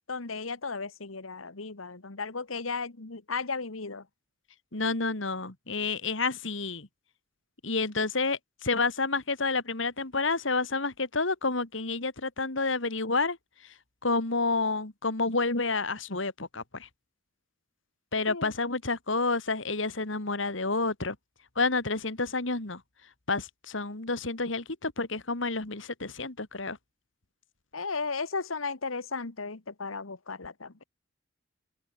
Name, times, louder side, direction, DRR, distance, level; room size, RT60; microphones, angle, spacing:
voice 1, 0.1-4.0 18.3-18.5 27.7-30.8, left 4 dB, 90° left, 1.6 m, -35 dB
voice 2, 4.7-6.9 7.6-13.4 14.0-16.9 18.1-21.2 21.6-22.8 23.3-26.8, left 3 dB, 70° left, 2.4 m, -29 dB
open air
head